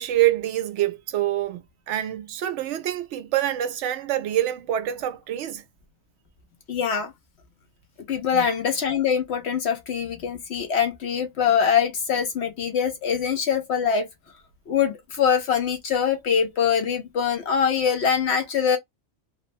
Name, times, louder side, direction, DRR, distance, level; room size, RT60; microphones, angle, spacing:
voice 1, 0.0-5.6 8.3-8.5, right 13 dB, 70° right, 0.8 m, -26 dB
voice 2, 6.7-7.1 8.1-14.1 14.7-18.8, left 7 dB, 65° left, 0.8 m, -23 dB
3.0 x 2.0 x 2.5 m
omnidirectional pair, 1.4 m